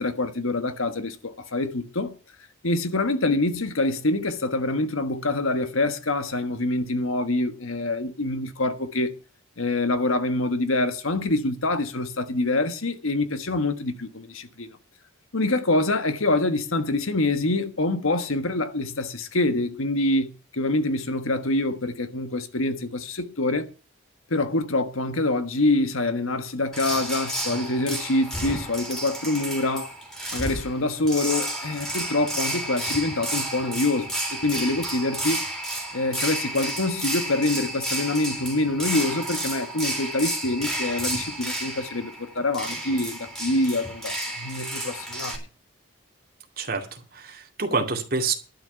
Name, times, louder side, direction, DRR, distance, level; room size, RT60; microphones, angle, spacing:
voice 1, 0.0-2.1 2.6-9.1 9.6-14.8 15.3-23.7 24.3-29.9 30.3-35.4 35.9-45.5, left 2 dB, 75° left, 1.4 m, -25 dB
sound 1, 26.7-45.4, right 1 dB, ahead, 3.5 m, -31 dB
voice 2, 46.6-48.3, right 4 dB, 45° right, 2.4 m, -27 dB
12.0 x 6.1 x 8.8 m
head